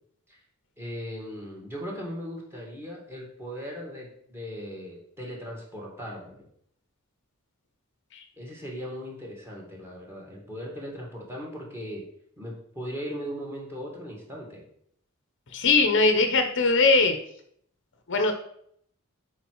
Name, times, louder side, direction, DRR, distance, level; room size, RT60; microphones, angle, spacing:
voice 1, 0.8-6.4 8.4-12.0 12.4-14.6, equal, 10° right, -2 dB, 2.3 m, -38 dB
voice 2, 15.5-17.2 18.1-18.3, left 3 dB, 60° left, 6 dB, 0.9 m, -21 dB
7.2 x 5.0 x 4.7 m, 0.67 s
head